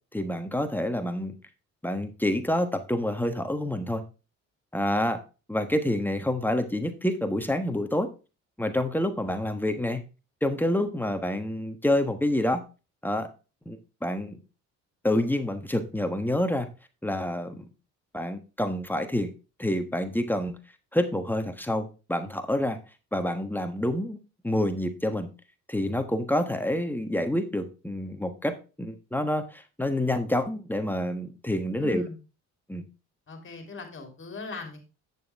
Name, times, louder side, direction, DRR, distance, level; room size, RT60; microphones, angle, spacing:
voice 1, 0.1-1.3 1.8-4.0 4.7-5.2 5.5-8.1 8.6-10.0 10.4-12.6 13.0-13.3 13.6-14.4 15.0-16.7 17.0-17.7 18.1-19.3 19.6-20.6 20.9-22.8 23.1-24.2 24.4-25.3 25.7-32.0 32.7-32.8, left 1 dB, 5° left, 7 dB, 1.3 m, -28 dB
voice 2, 31.8-32.2 33.3-34.8, left 3 dB, 40° left, 4 dB, 3.3 m, -39 dB
8.9 x 6.8 x 3.5 m, 0.31 s
cardioid pair, 90°, 30 cm